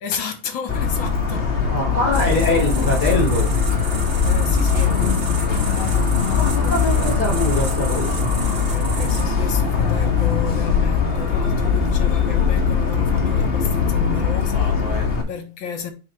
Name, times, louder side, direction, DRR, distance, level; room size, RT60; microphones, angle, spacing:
voice 1, 0.0-1.7 4.2-6.7 8.5-15.9, left 6 dB, 70° left, 2.0 m, -33 dB
Motor vehicle (road) / Siren, 0.7-15.2, left 6 dB, 35° left, 1.3 m, -20 dB
voice 2, 1.7-3.5 6.4-8.3, left 2 dB, 50° left, 5.4 m, -23 dB
sound 1, 2.1-9.3, right 5 dB, 55° right, 0.6 m, -32 dB
9.2 x 4.6 x 3.4 m
omnidirectional pair, 2.2 m